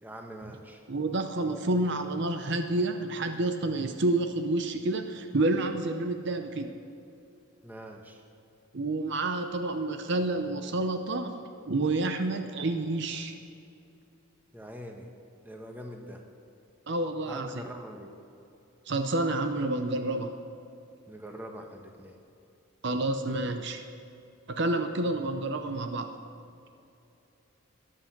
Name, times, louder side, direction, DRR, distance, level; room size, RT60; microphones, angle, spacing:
voice 1, 0.0-0.8 7.6-8.2 14.5-15.1 15.4-16.2 17.3-18.1 21.1-22.2, equal, 10° right, 3 dB, 1.2 m, -43 dB
voice 2, 0.9-6.7 8.7-11.3 11.7-13.3 16.9-17.6 18.9-20.3 22.8-23.8 24.5-26.2, right 2 dB, 55° right, 7 dB, 0.7 m, -29 dB
14.0 x 10.5 x 6.0 m, 2.7 s
head